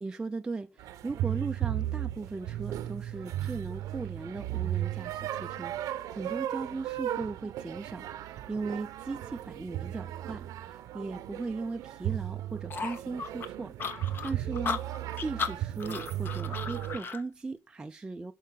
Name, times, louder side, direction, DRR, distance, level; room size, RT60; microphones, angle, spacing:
voice 1, 0.0-18.3, right 3 dB, 15° right, 0.4 m, -38 dB
sound 1, 0.8-17.0, right 13 dB, 85° right, 0.8 m, -36 dB
sound 2, 12.7-17.2, left 5 dB, 40° left, 0.9 m, -35 dB
11.5 x 4.6 x 5.8 m
cardioid pair, 155°, 6 cm